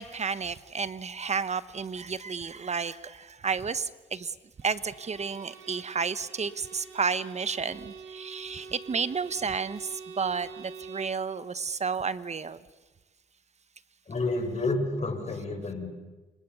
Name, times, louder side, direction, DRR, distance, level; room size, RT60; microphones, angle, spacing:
voice 1, 0.0-12.6, right 5 dB, 35° right, 1.2 m, -32 dB
Bowed string instrument, 4.6-11.3, right 5 dB, 80° right, 5.5 m, -46 dB
voice 2, 14.1-15.9, left 2 dB, 35° left, 7.1 m, -30 dB
28.5 x 27.5 x 7.2 m
cardioid pair, 90°, 20 cm